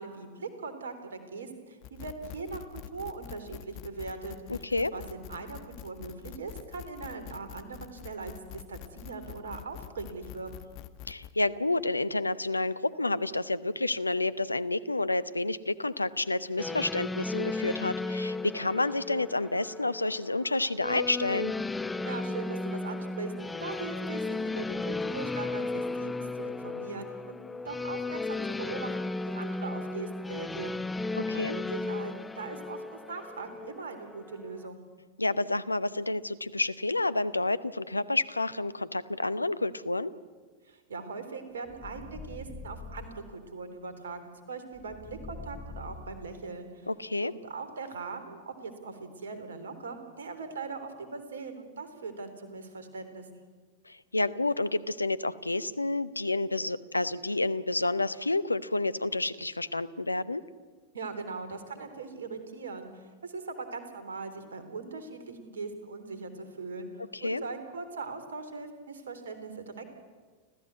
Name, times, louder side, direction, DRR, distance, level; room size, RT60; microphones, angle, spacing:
voice 1, 0.0-10.7 22.0-23.3 23.6-34.8 40.6-46.9 47.2-53.3 60.9-69.8, right 4 dB, 65° right, 9 dB, 3.6 m, -40 dB
sound 1, 1.8-11.3, left 12 dB, 40° left, 1.3 m, -45 dB
voice 2, 4.5-4.9 11.1-21.5 31.1-31.6 35.2-40.1 46.9-47.3 53.9-60.4 67.1-67.4, left 2 dB, 80° left, 16 dB, 0.9 m, -29 dB
sound 2, 16.6-34.7, left 3 dB, 10° left, 0.7 m, -35 dB
sound 3, 41.6-43.2 44.7-46.6, left 3 dB, 25° left, 6.4 m, -44 dB
29.5 x 14.5 x 8.3 m, 1.5 s
figure-of-eight pair, 90°, 0 cm